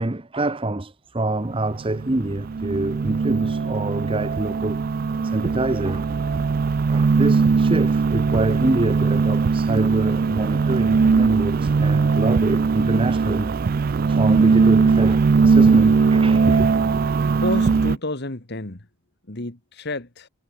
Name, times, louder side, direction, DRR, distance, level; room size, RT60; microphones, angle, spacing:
voice 1, 0.0-4.8 5.2-6.2 6.9-13.5 14.1-16.7, right 1 dB, 25° right, 0.8 m, -26 dB
sound 1, 1.5-18.0, right 4 dB, 40° right, 0.3 m, -19 dB
voice 2, 17.4-18.9 19.3-20.3, left 2 dB, 50° left, 1.9 m, -30 dB
head